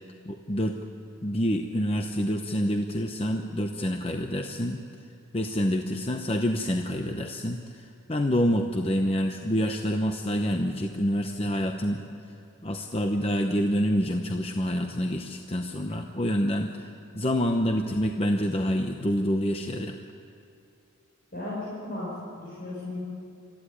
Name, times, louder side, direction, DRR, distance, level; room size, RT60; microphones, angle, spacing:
voice 1, 0.2-0.8 1.2-4.8 5.3-12.0 12.6-20.0, equal, 25° left, 4 dB, 0.8 m, -27 dB
voice 2, 21.3-23.0, left 2 dB, 45° left, -7 dB, 5.6 m, -35 dB
27.0 x 14.5 x 10.0 m, 2.6 s
head